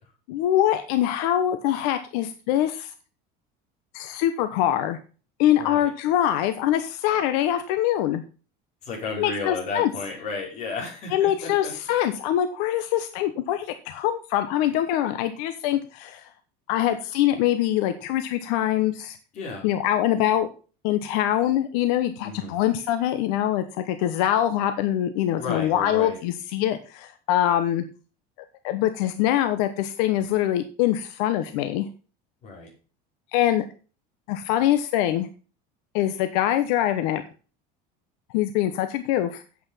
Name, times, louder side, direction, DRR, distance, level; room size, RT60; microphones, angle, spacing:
voice 1, 0.3-2.9 3.9-5.0 5.4-8.2 9.2-9.9 11.1-16.3 16.7-19.2 19.6-20.5 20.8-27.8 28.6-31.9 33.3-33.6 34.3-35.3 35.9-37.2 38.3-39.4, left 12 dB, 75° left, 9 dB, 1.1 m, -24 dB
voice 2, 5.6-5.9 8.8-11.7 19.3-19.7 22.2-22.6 25.3-26.2 32.4-32.7, left 4 dB, 35° left, -1 dB, 5.2 m, -33 dB
8.7 x 8.2 x 5.6 m, 0.37 s
cardioid pair, 175°, 20 cm